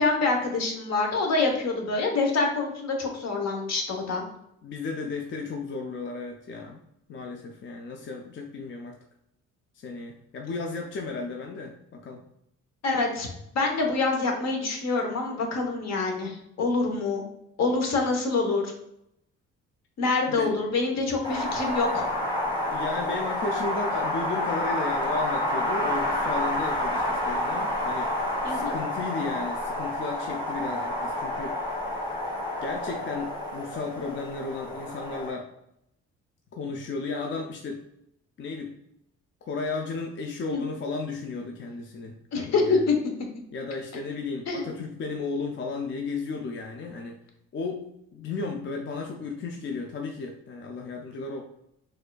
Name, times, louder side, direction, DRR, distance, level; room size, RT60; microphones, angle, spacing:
voice 1, 0.0-4.2 12.8-13.3 13.5-17.2 17.6-18.7 20.0-22.1 28.4-28.8 40.5-40.6 42.3-42.9 44.5-44.6, left 3 dB, 60° left, 2 dB, 0.9 m, -26 dB
voice 2, 4.6-6.8 7.1-9.0 9.7-12.2 20.3-20.6 22.7-28.1 28.5-31.7 32.6-35.5 36.5-37.8 38.4-38.7 39.5-42.9 43.5-47.2 47.5-47.9 48.1-51.4, left 4 dB, 40° left, 2 dB, 0.4 m, -34 dB
Wind, 21.2-35.3, left 1 dB, 15° left, 1.3 m, -29 dB
4.1 x 2.5 x 2.2 m, 0.79 s
cardioid pair, 90°, 30 cm